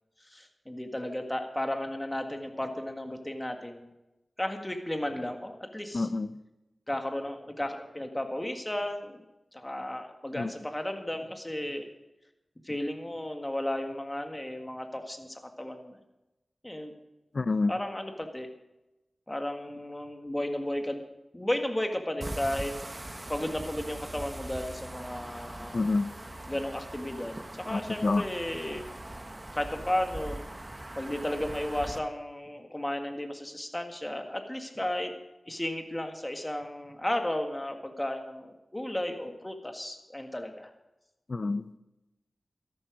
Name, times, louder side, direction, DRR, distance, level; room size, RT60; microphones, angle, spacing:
voice 1, 0.3-3.9 4.4-6.1 6.9-9.2 9.5-11.8 12.6-16.0 16.6-16.9 17.7-18.5 19.3-21.0 21.3-22.7 23.3-25.8 26.5-28.9 29.5-30.4 31.0-35.1 35.5-40.7, left 1 dB, 20° left, 5 dB, 1.8 m, -34 dB
voice 2, 5.9-6.3 10.4-10.5 17.3-17.7 25.7-26.1 27.7-28.2 41.3-41.6, left 3 dB, 60° left, 14 dB, 0.6 m, -27 dB
sound 1, 22.2-32.0, right 1 dB, 25° right, 1.1 m, -41 dB
13.0 x 12.0 x 5.2 m, 0.98 s
cardioid pair, 55°, 0 cm